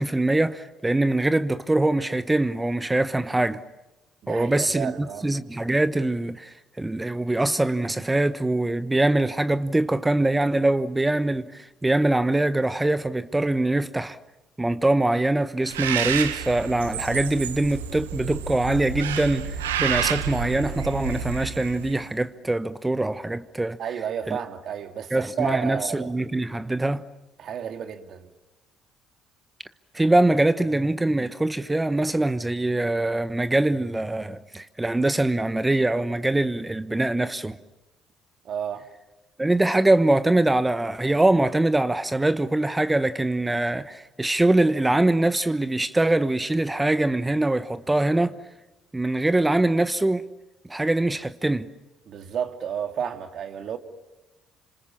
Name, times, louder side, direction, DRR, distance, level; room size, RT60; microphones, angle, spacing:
voice 1, 0.0-3.6 4.3-14.2 14.6-23.8 24.3-24.4 25.1-27.0 29.9-37.6 39.4-48.4 48.9-50.3 50.6-51.7, right 2 dB, 15° right, 1.2 m, -23 dB
voice 2, 4.2-5.3 23.8-26.1 27.4-28.3 38.4-38.9 52.1-53.8, right 8 dB, 60° right, 2.4 m, -31 dB
Bird, 15.7-22.1, right 8 dB, 90° right, 1.2 m, -30 dB
30.0 x 26.5 x 7.2 m
hypercardioid pair, 50°, 0 cm